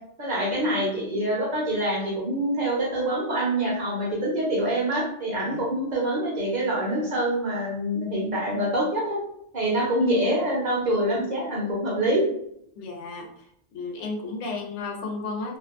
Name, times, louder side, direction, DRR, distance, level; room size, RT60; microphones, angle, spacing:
voice 1, 0.2-9.2 9.5-12.2, right 1 dB, 40° right, -4 dB, 0.8 m, -25 dB
voice 2, 5.3-5.6 12.8-13.5 13.7-15.6, left 3 dB, 85° left, 1 dB, 0.9 m, -33 dB
2.5 x 2.1 x 2.4 m, 0.71 s
omnidirectional pair, 1.2 m